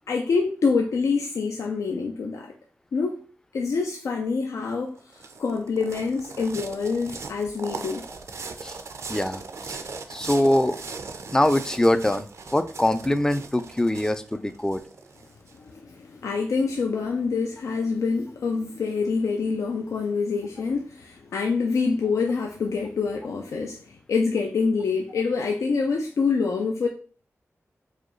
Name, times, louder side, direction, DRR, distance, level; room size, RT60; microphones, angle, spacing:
voice 1, 0.1-2.5 2.9-3.2 3.5-8.1 15.5-26.9, left 4 dB, 85° left, 0.4 m, -26 dB
sound 1, 4.7-15.5, right 4 dB, 70° right, 0.4 m, -39 dB
voice 2, 9.1-9.4 9.7-9.8 10.1-10.8 11.3-14.8, left 1 dB, 10° left, 0.3 m, -23 dB
4.8 x 2.3 x 3.0 m
wide cardioid pair, 70°, 5 cm